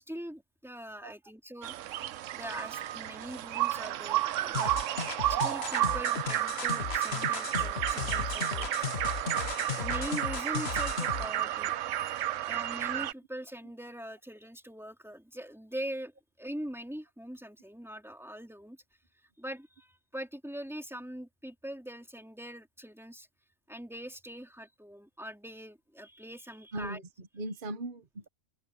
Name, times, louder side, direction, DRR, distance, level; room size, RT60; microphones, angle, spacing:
voice 1, 0.0-1.7 2.3-4.8 5.3-8.7 9.8-11.7 12.5-18.8 19.4-23.3 23.7-27.0, equal, ahead, 2.9 m, -42 dB
sound 1, 1.6-13.1, right 13 dB, 85° right, 1.0 m, -32 dB
sound 2, 4.5-11.3, left 5 dB, 55° left, 1.6 m, -35 dB
voice 2, 26.7-28.3, right 1 dB, 45° right, 1.2 m, -39 dB
open air
omnidirectional pair, 1.3 m